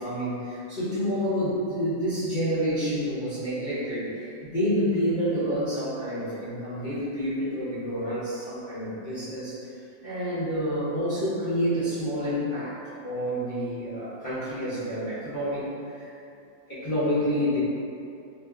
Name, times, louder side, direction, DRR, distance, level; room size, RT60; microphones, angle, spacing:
voice 1, 0.0-15.6 16.0-16.1 16.7-17.6, equal, 45° left, -13 dB, 0.6 m, -28 dB
2.5 x 2.5 x 3.5 m, 2.6 s
omnidirectional pair, 1.8 m